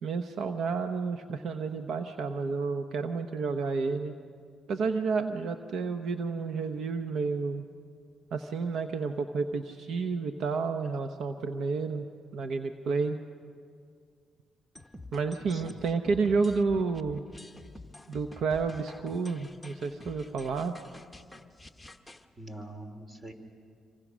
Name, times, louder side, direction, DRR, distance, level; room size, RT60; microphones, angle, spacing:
voice 1, 0.0-4.2 4.7-7.6 8.3-12.1 12.3-13.2 15.1-17.2 18.1-20.7, right 4 dB, 70° right, 7 dB, 0.9 m, -30 dB
sound 1, 14.8-22.3, left 2 dB, 5° left, 1.2 m, -49 dB
voice 2, 22.4-23.3, right 1 dB, 30° right, 6 dB, 3.0 m, -44 dB
27.0 x 24.0 x 6.3 m, 2.2 s
cardioid pair, 90°, 0 cm